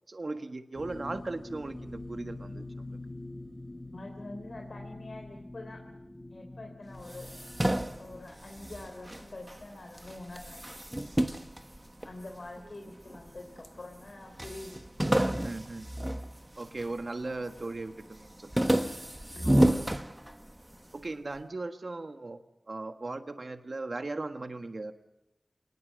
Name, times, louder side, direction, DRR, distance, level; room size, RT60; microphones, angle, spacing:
voice 1, 0.1-3.0 12.6-12.7 15.4-15.9 16.6-18.5 18.8-18.9 20.9-22.4 22.7-24.9, right 2 dB, 55° right, 7 dB, 1.4 m, -38 dB
sound 1, 0.7-8.3, left 2 dB, 25° left, 1.6 m, -44 dB
voice 2, 3.9-5.8 6.3-7.3 8.0-10.7 12.0-14.8 19.3-19.8, left 2 dB, 65° left, 3 dB, 3.3 m, -45 dB
sound 2, 7.0-9.6 10.0-12.5 13.1-13.8 14.0-14.1 14.4-17.0 17.4-17.8 18.2-20.7, right 1 dB, 15° right, 1.2 m, -30 dB
27.5 x 19.5 x 7.5 m, 0.89 s
wide cardioid pair, 70°, 0 cm